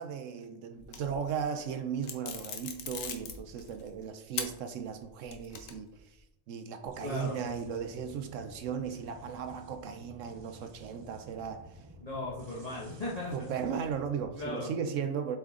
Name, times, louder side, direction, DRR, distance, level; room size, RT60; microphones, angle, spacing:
voice 1, 0.0-6.2 6.5-11.7 12.6-12.7 13.3-15.4, right 7 dB, 80° right, 8 dB, 0.9 m, -36 dB
sound 1, 0.8-1.4 2.0-3.9 4.3-4.5 5.0-6.0, left 6 dB, 85° left, 1.3 m, -39 dB
sound 2, 6.9-14.5, right 1 dB, 30° right, 0.5 m, -53 dB
voice 2, 7.0-7.4 12.0-13.3 14.3-14.7, left 2 dB, 30° left, -6 dB, 1.2 m, -37 dB
7.7 x 4.5 x 3.6 m, 0.88 s
omnidirectional pair, 1.3 m